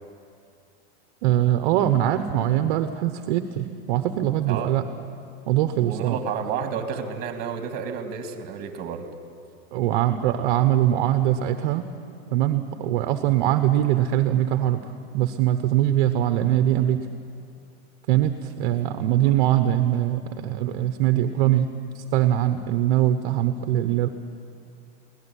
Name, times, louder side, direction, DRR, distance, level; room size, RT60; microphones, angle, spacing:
voice 1, 1.2-4.8 5.5-6.2 9.7-11.8 12.3-14.8 15.1-17.0 18.1-21.7 21.9-24.1, right 12 dB, 45° right, 8 dB, 1.0 m, -22 dB
voice 2, 4.5-4.8 5.7-9.1 19.2-19.4, right 7 dB, 25° right, 6 dB, 2.1 m, -31 dB
24.0 x 17.5 x 9.9 m, 2.4 s
supercardioid pair, 180°, 36 cm